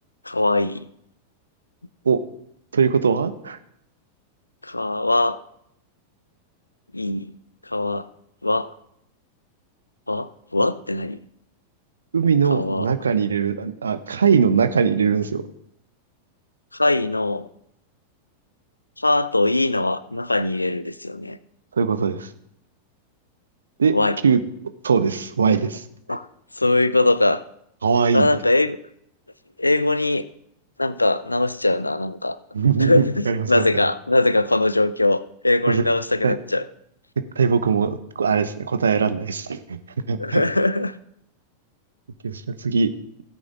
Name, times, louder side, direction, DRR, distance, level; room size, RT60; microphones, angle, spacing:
voice 1, 0.3-0.9 4.6-5.4 6.9-7.3 7.7-8.1 8.4-8.7 10.1-11.2 12.5-12.9 16.7-17.5 19.0-21.4 23.9-24.2 26.1-26.3 26.6-27.4 28.1-28.8 29.6-30.2 30.8-32.4 32.8-36.6 40.2-40.9, left 2 dB, 85° left, 18 dB, 0.4 m, -21 dB
voice 2, 2.7-3.6 12.1-15.4 21.7-22.3 23.8-24.0 24.2-24.4 24.8-25.8 27.8-28.3 32.5-33.9 35.7-35.8 36.2-36.3 37.4-39.8 40.1-40.4 42.2-42.9, right 6 dB, 70° right, 12 dB, 0.8 m, -21 dB
16.0 x 8.7 x 3.7 m, 0.74 s
figure-of-eight pair, 90°, 0 cm